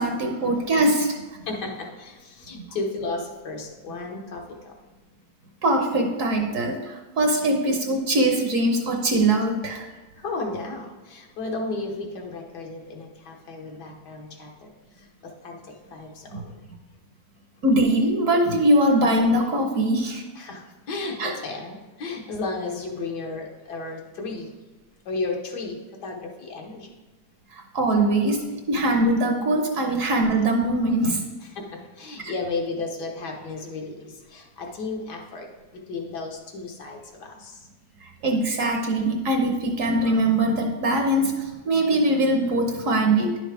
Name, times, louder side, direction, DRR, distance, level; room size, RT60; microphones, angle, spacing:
voice 1, 0.0-1.4 5.6-9.9 16.3-16.4 17.6-20.2 21.2-21.3 27.5-31.2 38.0-43.4, right 1 dB, 60° right, 3 dB, 1.1 m, -22 dB
voice 2, 1.5-4.7 10.2-14.7 15.0-16.6 20.4-24.5 25.0-26.9 31.4-37.6, left 3 dB, 75° left, 1 dB, 1.7 m, -34 dB
10.5 x 6.2 x 3.4 m, 1.2 s
omnidirectional pair, 1.8 m